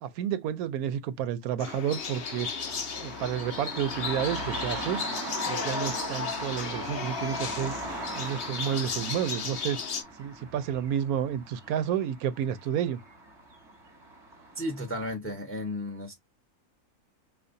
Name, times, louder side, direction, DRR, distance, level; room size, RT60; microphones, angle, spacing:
voice 1, 0.0-2.5 3.0-5.0 5.5-7.7 8.1-9.8 10.2-13.0, right 9 dB, 80° right, 1.0 m, -30 dB
sound 1, 1.6-10.0, left 6 dB, 55° left, 0.7 m, -35 dB
sound 2, 2.0-15.1, right 1 dB, 20° right, 1.0 m, -39 dB
voice 2, 14.5-16.1, left 1 dB, 10° left, 0.7 m, -34 dB
5.1 x 2.3 x 2.6 m
omnidirectional pair, 1.5 m